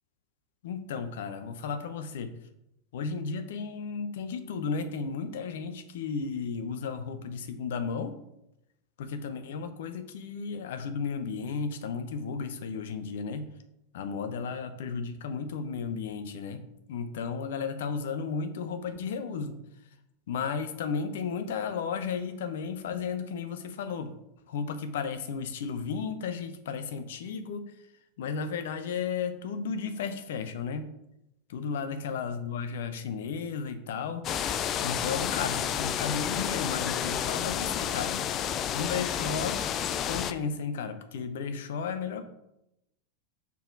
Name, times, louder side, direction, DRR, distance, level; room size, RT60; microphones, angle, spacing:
voice 1, 0.6-2.3 2.9-8.2 9.0-13.5 13.9-16.6 16.9-19.6 20.3-24.1 24.5-27.7 28.2-30.9 31.5-34.3 34.8-38.3 38.7-39.6 40.1-42.2, left 5 dB, 65° left, 9 dB, 0.8 m, -34 dB
sound 1, 34.2-40.3, left 9 dB, 35° left, 0.4 m, -30 dB
5.8 x 4.4 x 4.5 m, 0.84 s
figure-of-eight pair, 90°, 0 cm